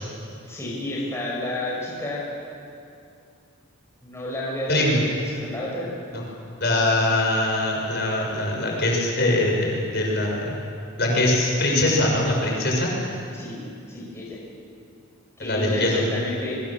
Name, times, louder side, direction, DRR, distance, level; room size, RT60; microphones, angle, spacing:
voice 1, 0.5-2.3 4.0-5.9 13.3-13.6 13.9-14.4 15.4-16.6, left 1 dB, 15° left, -4 dB, 5.7 m, -31 dB
voice 2, 6.6-10.5 11.0-12.9 15.4-16.0, left 1 dB, 50° left, -1 dB, 6.0 m, -22 dB
27.0 x 24.5 x 7.3 m, 2.5 s
head